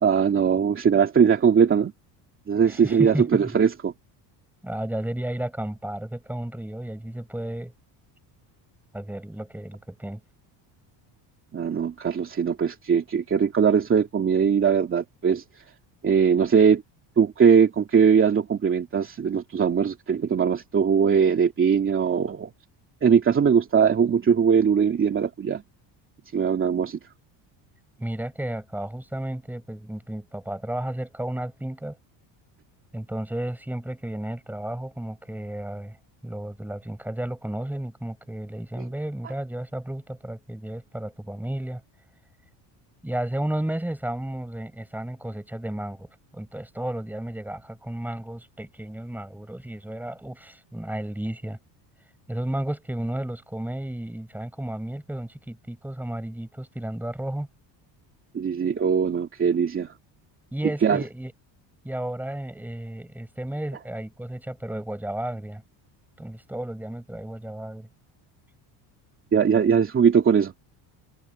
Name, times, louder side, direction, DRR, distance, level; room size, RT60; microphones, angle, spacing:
voice 1, 0.0-1.9 2.5-3.9 11.5-15.4 16.0-16.8 17.2-22.5 23.0-25.6 26.3-27.0 58.3-59.9 60.8-61.0 69.3-70.5, right 7 dB, 25° right, 2.6 m, -20 dB
voice 2, 2.7-3.5 4.6-7.7 8.9-10.2 28.0-32.0 32.9-36.0 36.2-41.8 43.0-51.6 52.3-57.5 60.5-61.3 61.8-65.6 66.2-67.9, right 1 dB, 5° right, 7.3 m, -33 dB
cardioid pair, 145°, 45 cm